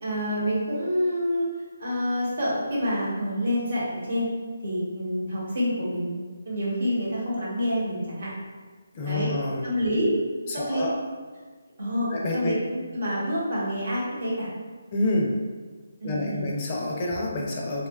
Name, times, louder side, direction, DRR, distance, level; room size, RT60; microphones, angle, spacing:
voice 1, 0.0-1.5 1.8-4.3 4.6-6.2 6.4-8.3 9.1-9.3 9.6-10.1 10.5-10.8 11.8-14.5 16.0-16.4, equal, 65° right, -6 dB, 1.0 m, -27 dB
voice 2, 8.9-9.6 10.5-11.0 12.1-12.6 14.9-15.4 16.0-17.9, left 2 dB, 30° left, -2 dB, 0.4 m, -28 dB
2.7 x 2.3 x 2.3 m, 1.5 s
hypercardioid pair, 160°, 0 cm